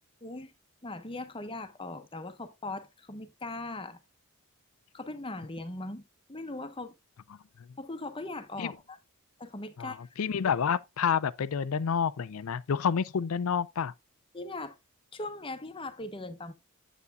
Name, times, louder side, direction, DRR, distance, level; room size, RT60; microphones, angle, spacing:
voice 1, 0.2-0.5 0.8-4.0 4.9-6.0 6.3-6.9 7.8-9.0 9.4-10.1 14.3-14.8 15.1-16.5, left 2 dB, 25° left, 1.0 m, -39 dB
voice 2, 9.8-13.9, left 7 dB, 70° left, 0.4 m, -29 dB
8.2 x 8.2 x 2.4 m
head